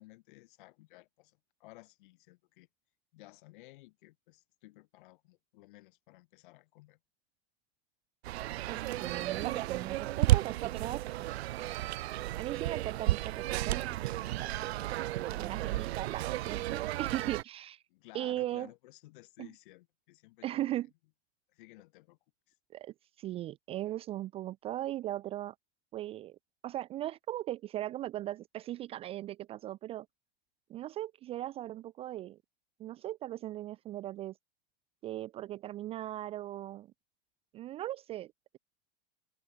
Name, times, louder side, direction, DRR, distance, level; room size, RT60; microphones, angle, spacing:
voice 1, 0.0-2.7 3.1-7.0 17.9-20.7 21.5-22.2 22.5-22.6, left 20 dB, 50° left, 4.9 m, -56 dB
sound 1, 8.2-17.4, right 16 dB, 80° right, 0.7 m, -33 dB
voice 2, 8.7-11.1 12.3-17.8 18.1-18.7 19.4-19.5 20.4-20.9 22.7-25.5 25.9-26.4 26.6-30.1 30.7-32.4 32.8-34.4 35.0-36.9 37.5-38.3, right 14 dB, 20° right, 0.6 m, -38 dB
supercardioid pair, 165°, 31 cm